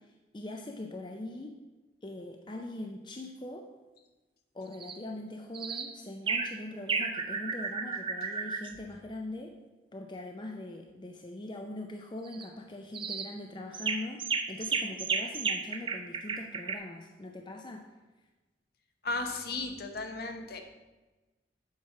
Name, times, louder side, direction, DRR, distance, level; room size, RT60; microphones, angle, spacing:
voice 1, 0.0-1.5 2.0-3.7 4.5-9.5 9.9-17.9, left 1 dB, 25° left, 3 dB, 0.5 m, -42 dB
sound 1, 4.7-5.0 5.5-5.9 6.3-6.5 6.9-8.7 12.2-12.4 12.9-13.3 13.7-16.8, right 5 dB, 30° right, 0.5 m, -33 dB
voice 2, 19.0-20.6, left 3 dB, 55° left, 5 dB, 0.9 m, -35 dB
7.5 x 4.5 x 5.8 m, 1.2 s
head